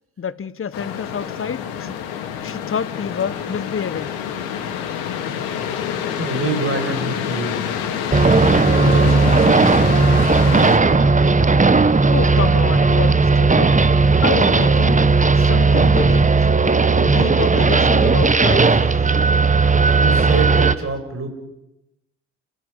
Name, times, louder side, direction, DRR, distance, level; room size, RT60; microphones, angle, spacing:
voice 1, 0.2-4.2 12.1-13.8 14.2-15.0 15.3-16.3 17.0-18.8, left 7 dB, 35° left, 1.3 m, -28 dB
sound 1, 0.7-10.8, left 8 dB, 70° left, 2.9 m, -27 dB
voice 2, 6.1-7.7 8.7-11.1 20.0-21.3, right 3 dB, 35° right, 6.7 m, -27 dB
sound 2, 8.1-20.7, right 4 dB, 20° right, 1.4 m, -15 dB
29.5 x 14.5 x 8.3 m
hypercardioid pair, 50°, 38 cm